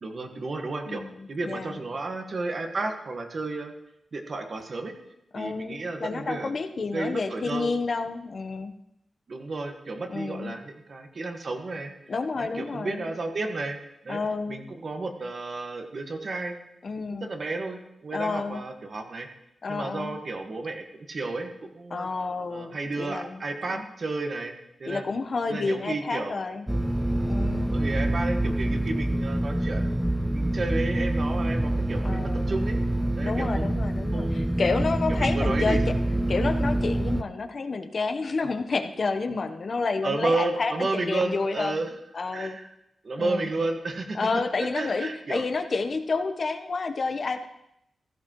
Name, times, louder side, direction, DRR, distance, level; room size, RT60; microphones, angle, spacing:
voice 1, 0.0-1.0 1.3-3.7 4.1-4.9 5.3-6.5 6.9-7.7 9.3-11.9 12.4-13.8 14.0-14.2 14.5-16.6 17.2-19.3 19.7-22.1 22.5-25.0 25.5-26.4 27.7-29.9 30.3-32.8 33.2-33.7 34.1-34.6 35.1-35.9 38.4-38.5 40.0-41.9 42.3-42.7 43.0-45.4, right 3 dB, 55° right, 4 dB, 1.5 m, -32 dB
voice 2, 1.4-1.8 5.3-8.7 10.1-10.5 12.1-13.1 14.1-14.6 16.8-17.3 18.1-18.6 19.6-20.2 21.9-23.4 23.7-23.8 24.9-26.6 27.3-27.7 32.0-32.6 33.2-35.8 36.3-41.8 42.1-42.6 43.2-43.5 44.1-47.5, left 4 dB, 55° left, 7 dB, 0.9 m, -30 dB
sound 1, 26.7-37.2, right 1 dB, 5° right, 0.4 m, -26 dB
15.5 x 13.5 x 3.0 m, 0.82 s
cardioid pair, 80°, 0 cm